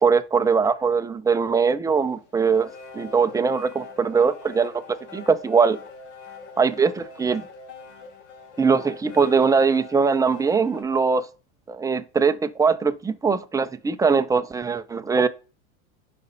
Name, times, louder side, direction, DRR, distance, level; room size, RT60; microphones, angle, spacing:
voice 1, 0.0-2.7 2.9-5.8 6.6-7.4 8.6-11.3 11.7-15.3, right 5 dB, 10° right, 0.5 m, -21 dB
sound 1, 2.0-10.8, left 3 dB, 45° left, 1.8 m, -43 dB
11.0 x 4.3 x 5.4 m
hypercardioid pair, 105°, 41 cm